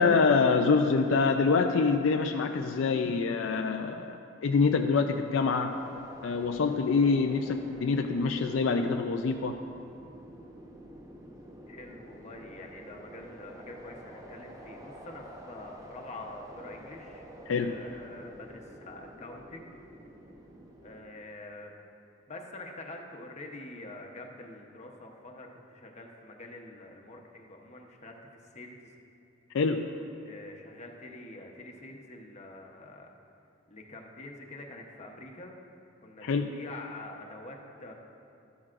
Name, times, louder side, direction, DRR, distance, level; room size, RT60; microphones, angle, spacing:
voice 1, 0.0-5.8 6.2-9.6 17.5-17.8 29.5-30.0 36.2-36.5, left 4 dB, 70° left, 5 dB, 0.4 m, -26 dB
sound 1, 5.7-21.0, right 1 dB, 20° right, 0.8 m, -48 dB
voice 2, 11.7-17.2 17.6-19.8 20.8-21.9 22.3-28.9 30.3-33.1 33.7-35.6 36.0-37.9, left 2 dB, 35° left, 1 dB, 0.9 m, -46 dB
12.5 x 12.0 x 2.5 m, 2.7 s
head